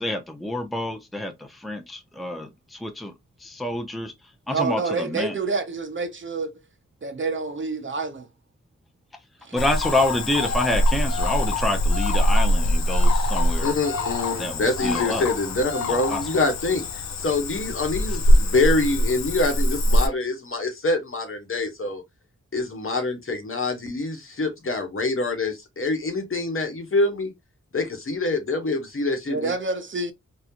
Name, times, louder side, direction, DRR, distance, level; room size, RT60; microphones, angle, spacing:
voice 1, 0.0-3.1 3.4-4.1 4.5-5.3 9.5-13.8 14.4-15.2 15.9-16.2, left 1 dB, ahead, 0.6 m, -28 dB
voice 2, 4.5-6.5 7.0-8.3 9.4-9.6 29.3-30.1, right 4 dB, 40° right, 0.6 m, -28 dB
Cricket / Frog, 9.6-20.1, left 1 dB, 70° left, 0.6 m, -23 dB
voice 3, 13.6-16.8 17.2-22.0 22.5-27.3 27.7-29.5, left 2 dB, 45° left, 1.1 m, -25 dB
3.7 x 2.3 x 2.8 m
wide cardioid pair, 75°, 29 cm